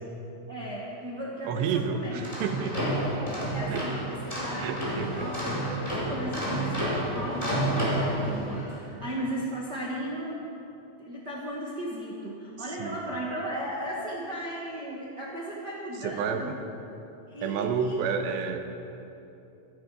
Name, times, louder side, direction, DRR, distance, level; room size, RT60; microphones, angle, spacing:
voice 1, 0.5-2.2 2.5-4.8 5.1-10.4 11.0-16.5 17.3-18.0, right 1 dB, 65° right, -5 dB, 1.0 m, -36 dB
voice 2, 1.5-3.2 3.7-3.8 4.6-5.3 12.8-13.0 16.0-16.6 17.4-18.6, right 6 dB, 80° right, 6 dB, 3.1 m, -30 dB
sound 1, 2.1-8.8, right 1 dB, 10° left, 3.5 m, -30 dB
24.0 x 11.5 x 5.0 m, 2.8 s
omnidirectional pair, 5.1 m